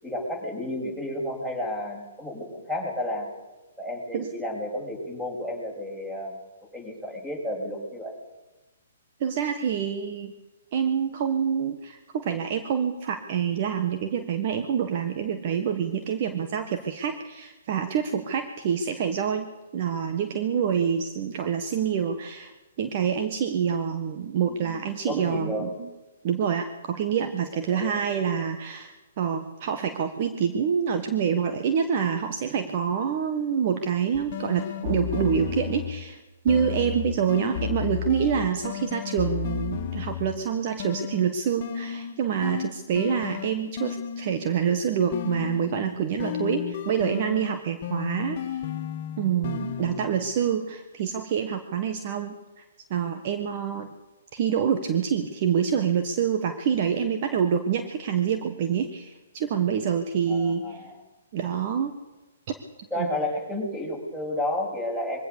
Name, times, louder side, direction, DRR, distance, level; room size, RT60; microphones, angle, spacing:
voice 1, 0.0-3.3 3.8-6.4 6.7-8.2 24.4-24.8 25.1-25.7 27.7-28.5 60.3-61.0 62.9-65.2, left 1 dB, 5° right, 1 dB, 7.2 m, -32 dB
voice 2, 9.2-10.3 10.7-22.5 22.8-25.9 26.2-36.2 36.4-48.6 49.2-52.6 52.9-53.9 54.3-60.8 61.3-62.0 62.5-62.6 63.0-63.1, right 7 dB, 45° right, 7 dB, 1.6 m, -26 dB
sound 1, 34.1-36.1 36.5-40.4 40.8-44.5 45.1-50.1, left 10 dB, 40° left, 1.8 m, -33 dB
23.0 x 16.5 x 6.9 m, 1.1 s
figure-of-eight pair, 125°, 0 cm